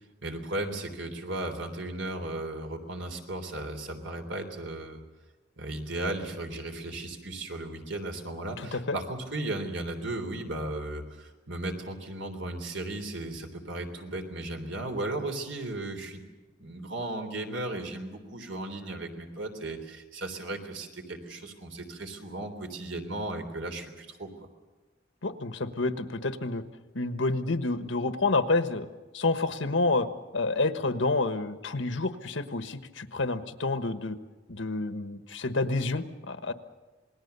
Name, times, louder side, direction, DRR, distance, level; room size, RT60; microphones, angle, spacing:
voice 1, 0.2-5.0 5.6-16.2 16.6-24.3, right 2 dB, 75° right, 5 dB, 3.4 m, -35 dB
voice 2, 8.6-9.0 25.2-26.6 26.9-28.9 29.1-30.1 30.3-34.2 34.5-36.5, left 3 dB, 80° left, 10 dB, 1.3 m, -29 dB
27.5 x 20.0 x 6.9 m, 1.3 s
head